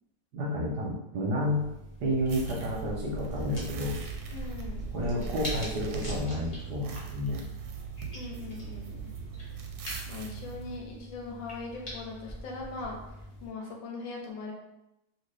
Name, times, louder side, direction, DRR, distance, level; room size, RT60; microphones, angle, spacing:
voice 1, 0.3-1.6 2.0-4.0 4.9-7.4 9.2-9.3, equal, 70° right, -3 dB, 1.1 m, -30 dB
sound 1, 1.4-13.5, equal, 35° left, 0.6 m, -42 dB
sound 2, 2.3-10.8, right 8 dB, 85° right, 1.4 m, -41 dB
voice 2, 4.3-4.8 8.1-9.1 10.1-14.5, left 3 dB, 80° left, -1 dB, 1.5 m, -40 dB
2.9 x 2.9 x 3.2 m, 0.88 s
omnidirectional pair, 2.1 m